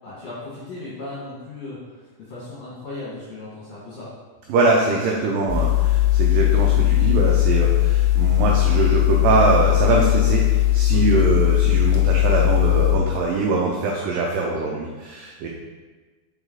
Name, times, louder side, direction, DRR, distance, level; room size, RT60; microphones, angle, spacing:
voice 1, 0.0-4.1 10.9-11.3, left 2 dB, 55° left, -9 dB, 1.9 m, -36 dB
voice 2, 4.5-15.5, right 3 dB, 85° right, -1 dB, 1.9 m, -22 dB
sound 1, 5.5-13.0, left 15 dB, 80° left, 2.2 m, -18 dB
5.4 x 4.8 x 3.7 m, 1.4 s
omnidirectional pair, 4.6 m